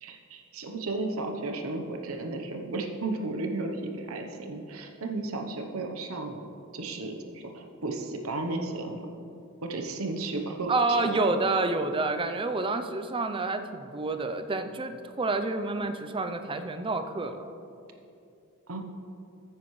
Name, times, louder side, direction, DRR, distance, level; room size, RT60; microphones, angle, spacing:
voice 1, 0.0-6.4 6.7-9.1 9.6-11.2 18.7-18.8, right 2 dB, 85° right, 3 dB, 0.9 m, -34 dB
voice 2, 10.7-17.4, right 3 dB, 25° right, 8 dB, 0.5 m, -28 dB
14.5 x 9.3 x 3.2 m, 2.7 s
head